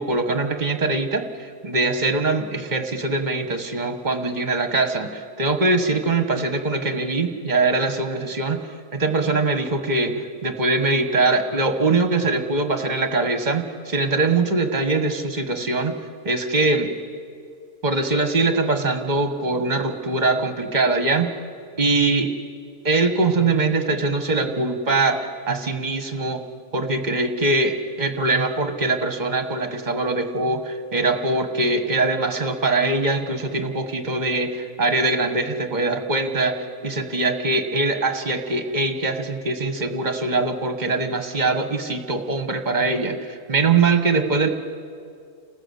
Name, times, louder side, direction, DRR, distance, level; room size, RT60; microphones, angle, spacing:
voice 1, 0.0-8.6 8.9-15.9 16.2-16.9 17.8-21.3 21.8-22.3 22.8-26.4 26.7-44.5, right 3 dB, 30° right, 7 dB, 1.5 m, -22 dB
30.0 x 14.0 x 8.2 m, 2.3 s
omnidirectional pair, 1.6 m